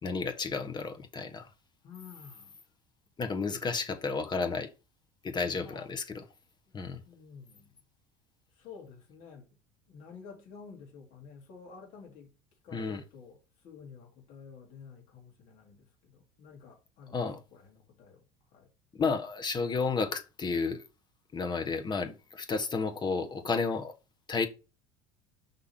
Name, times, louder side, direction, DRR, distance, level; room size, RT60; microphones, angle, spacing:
voice 1, 0.0-1.5 3.2-4.7 5.2-6.0 6.7-7.0 12.7-13.0 17.1-17.4 18.9-20.8 21.3-23.9 24.3-24.5, left 4 dB, 30° left, 1.3 m, -32 dB
voice 2, 1.8-2.6 5.5-6.0 6.7-6.8 7.0-7.8 8.5-9.6 9.9-12.4 12.6-18.7, left 5 dB, 60° left, 2.9 m, -51 dB
5.7 x 3.7 x 5.7 m
supercardioid pair, 90°, 16 cm